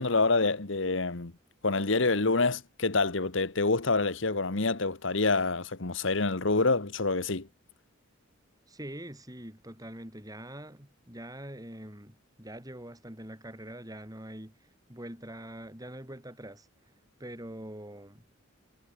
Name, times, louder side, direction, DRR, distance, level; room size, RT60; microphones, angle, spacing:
voice 1, 0.0-1.3 1.6-7.5, left 3 dB, 65° left, 1.4 m, -27 dB
voice 2, 8.7-16.7 17.2-18.2, right 1 dB, 20° right, 5.9 m, -44 dB
head